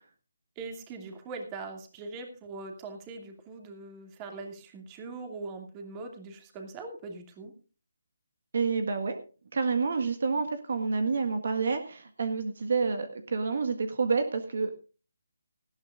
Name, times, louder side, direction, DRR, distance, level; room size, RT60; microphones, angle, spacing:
voice 1, 0.6-7.5, right 3 dB, 20° right, 4 dB, 2.5 m, -41 dB
voice 2, 8.5-9.2 9.5-14.7, right 4 dB, 60° right, 8 dB, 1.6 m, -28 dB
19.0 x 13.5 x 2.5 m, 0.35 s
figure-of-eight pair, 155°, 0 cm